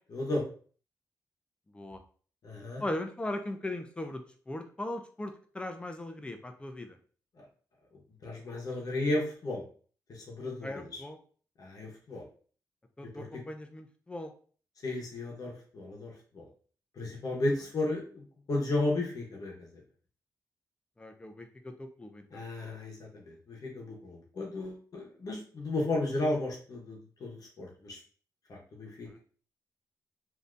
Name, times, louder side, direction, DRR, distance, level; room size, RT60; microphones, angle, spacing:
voice 1, 0.1-0.4 2.4-2.8 7.4-7.5 8.2-9.6 10.1-11.0 11.6-12.3 13.2-13.3 14.8-16.5 16.9-19.8 22.3-28.0 28.5-29.2, left 2 dB, 60° left, -2 dB, 0.9 m, -34 dB
voice 2, 2.8-7.0 10.6-11.2 13.0-14.3 21.0-22.4 29.1-29.2, left 1 dB, 15° left, 6 dB, 0.5 m, -39 dB
3.3 x 2.7 x 2.5 m, 0.43 s
cardioid pair, 105°, 7 cm